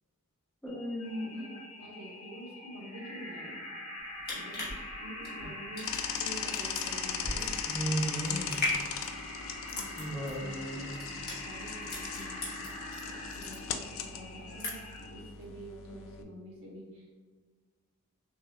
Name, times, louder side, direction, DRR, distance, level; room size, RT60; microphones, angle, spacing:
voice 1, 0.6-1.5 7.7-8.6 10.0-11.0, right 1 dB, 5° left, -5 dB, 0.7 m, -35 dB
sound 1, 0.7-15.3, left 1 dB, 90° left, 1.5 m, -44 dB
voice 2, 1.2-1.5 1.8-3.6 4.3-7.6 9.7-12.7 13.0-17.2, equal, 65° right, -4 dB, 1.3 m, -47 dB
sound 2, 4.0-13.0 13.3-14.0 14.3-15.0 15.4-15.5, left 2 dB, 45° left, 1.3 m, -38 dB
sound 3, 5.8-16.2, left 7 dB, 65° left, 0.3 m, -39 dB
6.0 x 2.6 x 2.3 m, 1.4 s
head